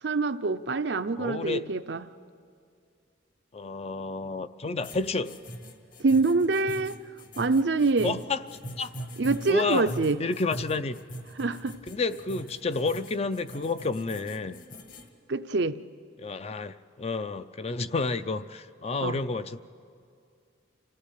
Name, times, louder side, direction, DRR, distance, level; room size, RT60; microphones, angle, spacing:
voice 1, 0.0-2.1 6.0-7.0 7.4-8.2 9.2-10.2 11.4-11.8 15.3-15.8 19.0-19.2, right 3 dB, 65° right, 11 dB, 0.6 m, -25 dB
voice 2, 1.2-1.7 3.5-5.4 8.0-8.4 8.8-8.9 9.5-9.9 10.2-11.0 11.9-14.6 16.2-19.6, left 3 dB, 35° left, 12 dB, 0.5 m, -30 dB
sound 1, 4.8-15.1, equal, 50° left, 1.6 m, -41 dB
26.5 x 16.0 x 8.4 m, 2.4 s
head